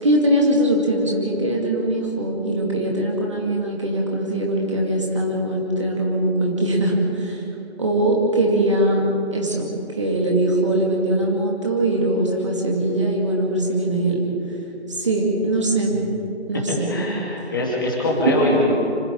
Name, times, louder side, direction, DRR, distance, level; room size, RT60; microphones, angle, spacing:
voice 1, 0.0-7.4 7.8-9.0 9.3-14.2 14.9-16.0 16.5-16.9 18.2-18.6, right 1 dB, 25° right, -1 dB, 2.4 m, -21 dB
voice 2, 16.9-18.7, left 1 dB, 20° left, -4 dB, 2.5 m, -22 dB
26.0 x 13.5 x 8.7 m, 2.8 s
figure-of-eight pair, 165°, 34 cm